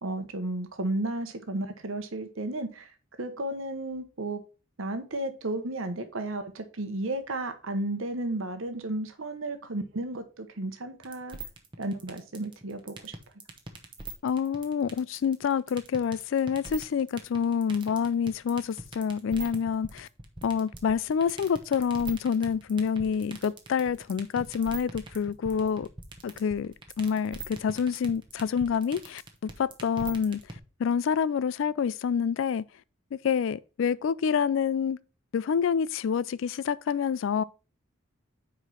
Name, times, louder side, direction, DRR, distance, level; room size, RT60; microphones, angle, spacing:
voice 1, 0.0-2.9 3.2-4.4 4.8-11.4 11.8-13.1, right 2 dB, 75° right, 1.0 m, -33 dB
sound 1, 11.0-30.6, right 3 dB, 25° right, 0.9 m, -41 dB
voice 2, 14.2-20.1 20.4-25.9 26.2-30.4 30.8-32.6 33.1-35.0 35.3-37.4, left 7 dB, 65° left, 0.3 m, -27 dB
4.8 x 4.8 x 5.5 m
head